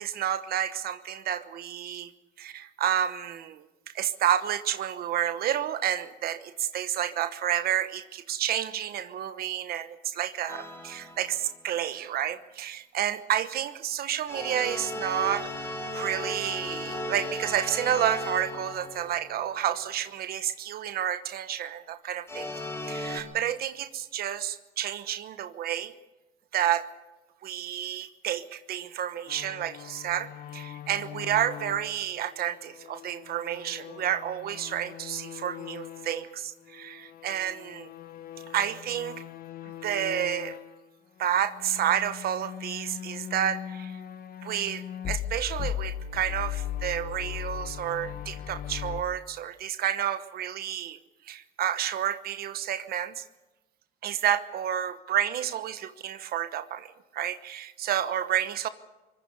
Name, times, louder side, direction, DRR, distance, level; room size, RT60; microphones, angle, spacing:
voice 1, 0.0-2.1 2.4-3.6 3.9-15.5 15.9-22.5 22.8-25.9 26.5-26.8 27.4-37.9 38.5-39.2 39.8-40.6 41.2-44.0 44.4-51.0 51.2-53.2 54.0-58.7, right 10 dB, 65° right, 12 dB, 1.1 m, -30 dB
sound 1, 10.5-11.6 14.3-19.9 22.3-23.2, left 1 dB, 15° left, 3.6 m, -36 dB
sound 2, 29.3-36.4 36.7-40.8 41.4-49.0, left 10 dB, 60° left, 1.1 m, -39 dB
24.0 x 20.0 x 6.7 m, 1.1 s
cardioid pair, 110°, 17 cm